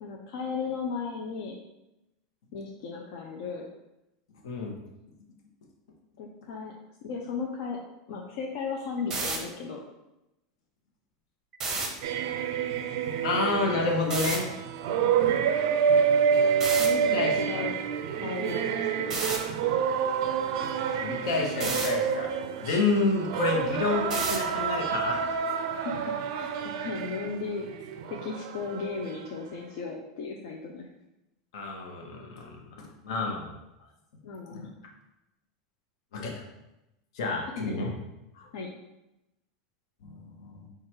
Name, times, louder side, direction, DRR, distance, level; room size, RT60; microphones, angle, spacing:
voice 1, 0.0-1.6 2.5-3.7 6.2-6.7 7.0-7.8 8.1-9.8 13.4-13.7 15.0-15.4 16.8-17.8 18.1-19.2 19.6-19.9 25.7-27.7 28.1-30.9 34.2-34.7 38.5-38.7, left 5 dB, 55° left, 0 dB, 0.5 m, -36 dB
sound 1, 9.0-9.4 11.5-11.9 14.1-14.4 16.6-16.9 19.1-19.4 21.6-21.9 24.1-24.5, right 3 dB, 15° right, 0.7 m, -30 dB
sound 2, 12.0-29.2, right 7 dB, 60° right, 0.4 m, -28 dB
voice 2, 13.2-14.4 17.1-17.6 21.0-22.3 22.6-25.2 31.5-33.6 34.5-34.7 36.1-36.4 37.1-37.9 38.3-38.5 40.0-40.7, left 3 dB, 70° left, 0 dB, 0.9 m, -29 dB
4.6 x 2.4 x 4.5 m, 0.94 s
supercardioid pair, 170°, 3 cm